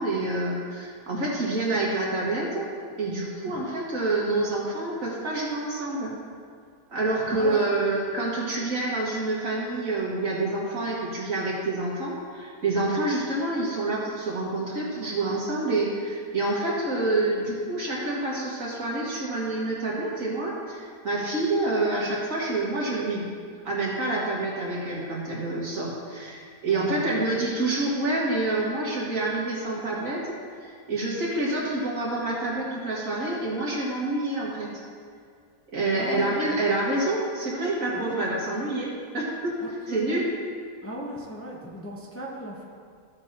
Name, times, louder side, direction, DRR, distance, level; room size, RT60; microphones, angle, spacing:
voice 1, 0.0-2.7 3.0-6.1 6.9-23.3 23.6-34.7 35.7-39.6 39.9-40.3, right 2 dB, 65° right, -5 dB, 2.4 m, -27 dB
voice 2, 7.3-7.6 26.7-27.2 36.0-36.6 37.9-38.2 39.9-40.2 40.8-42.7, equal, 10° left, -3 dB, 0.9 m, -37 dB
14.5 x 7.6 x 3.0 m, 2.1 s
omnidirectional pair, 1.6 m